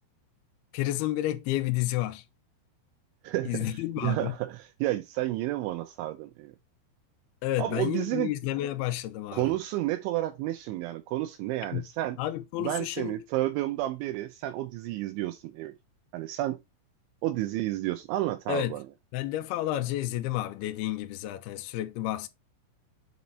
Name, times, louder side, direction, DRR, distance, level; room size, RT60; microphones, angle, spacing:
voice 1, 0.7-2.2 3.5-4.3 7.4-9.5 11.7-11.8 12.2-13.2 18.5-18.8 19.1-22.3, left 14 dB, 85° left, 2.2 m, -30 dB
voice 2, 3.2-6.5 7.6-8.3 9.3-12.2 12.6-15.7 16.1-16.6 17.2-18.8, right 15 dB, 80° right, 2.9 m, -31 dB
7.7 x 4.2 x 4.1 m
omnidirectional pair, 5.6 m